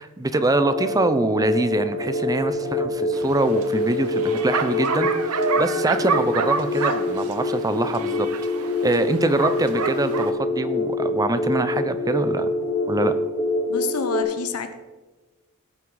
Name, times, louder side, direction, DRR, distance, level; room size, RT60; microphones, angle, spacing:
voice 1, 0.0-8.3 8.8-12.5 12.9-13.1, right 2 dB, 15° right, 10 dB, 0.6 m, -24 dB
sound 1, 0.5-14.2, left 2 dB, 55° left, 3.0 m, -25 dB
Bark, 3.1-10.3, right 5 dB, 80° right, 0.8 m, -28 dB
voice 2, 13.7-14.8, left 5 dB, 90° left, 8 dB, 0.9 m, -28 dB
17.5 x 6.0 x 3.9 m, 1.2 s
head